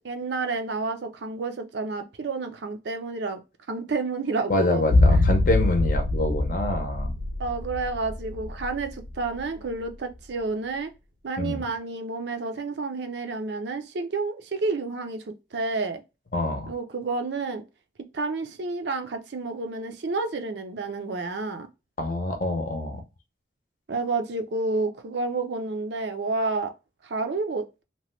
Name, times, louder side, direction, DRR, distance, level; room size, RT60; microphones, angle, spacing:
voice 1, 0.0-3.4 3.7-4.8 7.4-10.9 11.2-16.0 16.7-17.6 18.1-21.7 23.9-26.7 27.0-27.8, right 3 dB, 70° right, 0.5 m, -30 dB
voice 2, 4.5-7.1 11.4-11.6 16.3-16.7 22.0-23.0, left 2 dB, 45° left, 0.6 m, -26 dB
sound 1, 4.9-9.1 9.4-9.5, left 2 dB, 85° left, 0.6 m, -23 dB
2.9 x 2.2 x 3.0 m
head